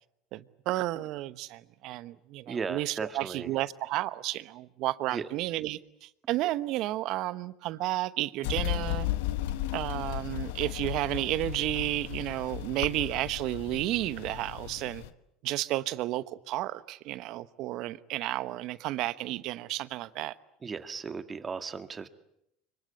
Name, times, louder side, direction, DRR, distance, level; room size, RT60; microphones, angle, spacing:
voice 1, 0.3-9.1 9.7-15.0 15.4-20.3, right 16 dB, 60° right, 1.0 m, -32 dB
voice 2, 2.5-3.5 5.1-5.3 20.6-22.1, right 5 dB, 30° right, 1.9 m, -36 dB
sound 1, 8.4-15.1, left 14 dB, 80° left, 1.2 m, -35 dB
25.5 x 23.5 x 8.4 m
hypercardioid pair, 85°, 0 cm